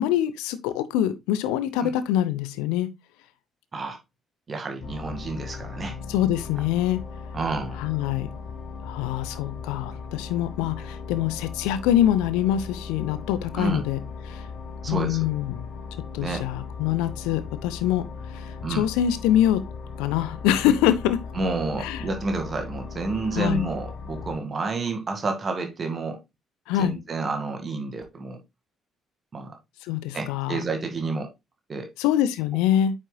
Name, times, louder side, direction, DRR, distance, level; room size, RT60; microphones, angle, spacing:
voice 1, 0.0-2.9 6.1-7.0 7.8-8.3 8.8-14.0 14.3-14.4 14.9-15.7 16.1-18.0 18.3-19.6 20.0-21.2 21.8-22.0 23.4-23.6 26.7-26.9 29.9-30.6 32.0-32.9, left 11 dB, 65° left, 0.8 m, -24 dB
voice 2, 4.5-6.0 7.3-7.8 13.5-13.8 14.8-15.3 16.2-16.5 18.6-18.8 21.3-26.2 26.8-28.4 29.3-29.6 30.1-31.3 31.7-31.9, right 3 dB, 35° right, 2.0 m, -29 dB
sound 1, 4.8-24.4, left 5 dB, 50° left, 1.3 m, -38 dB
8.9 x 6.4 x 2.3 m
figure-of-eight pair, 45°, 0 cm